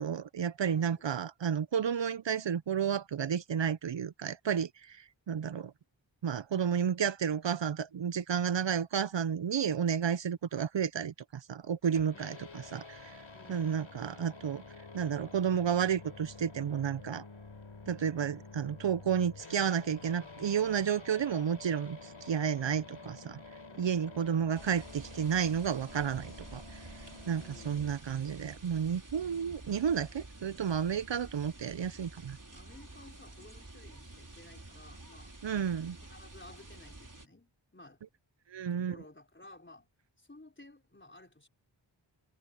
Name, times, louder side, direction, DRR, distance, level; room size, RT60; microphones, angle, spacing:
voice 1, 0.0-5.7 6.2-12.4 12.7-13.2 13.5-14.6 14.9-17.2 17.9-23.4 23.8-26.9 27.3-32.4 35.4-36.0 38.5-39.0, right 8 dB, 70° right, 0.6 m, -31 dB
voice 2, 0.6-1.0 12.1-12.7 13.3-13.9 23.6-24.3 27.3-27.9 32.5-35.4 36.0-38.0 38.7-39.9 40.2-41.5, left 2 dB, 25° left, 3.8 m, -55 dB
sound 1, 11.9-27.9, left 3 dB, 85° left, 3.9 m, -50 dB
sound 2, 24.5-37.3, right 2 dB, 40° right, 4.9 m, -50 dB
wide cardioid pair, 50°, 46 cm